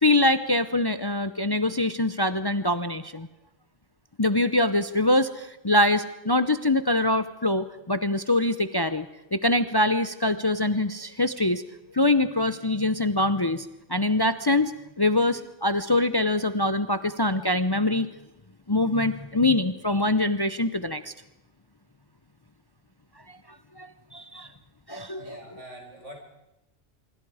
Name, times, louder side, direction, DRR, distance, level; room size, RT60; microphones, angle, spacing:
voice 1, 0.0-3.3 4.2-9.1 9.3-11.6 11.9-14.7 15.0-18.1 18.7-21.1 23.8-24.5 24.9-25.4, left 2 dB, 25° left, 12 dB, 0.6 m, -24 dB
voice 2, 25.2-26.2, right 1 dB, 85° right, 2 dB, 5.4 m, -44 dB
25.0 x 24.0 x 4.9 m, 0.93 s
omnidirectional pair, 1.2 m